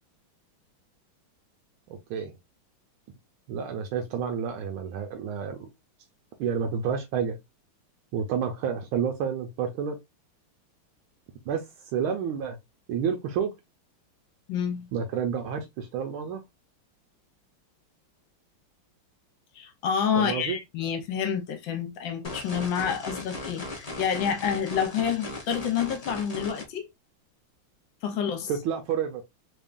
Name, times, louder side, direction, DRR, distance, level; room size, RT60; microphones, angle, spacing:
voice 1, 1.9-2.3 3.5-5.7 6.4-7.4 8.1-10.0 11.5-11.6 11.9-12.6 12.9-13.5 14.9-16.4 20.2-20.6 28.5-29.2, right 7 dB, 80° right, 1.5 m, -29 dB
voice 2, 14.5-14.9 19.5-26.9 28.0-28.5, left 7 dB, 70° left, 1.5 m, -28 dB
sound 1, 22.2-26.6, left 2 dB, 40° left, 0.5 m, -37 dB
3.6 x 3.6 x 2.5 m
omnidirectional pair, 2.3 m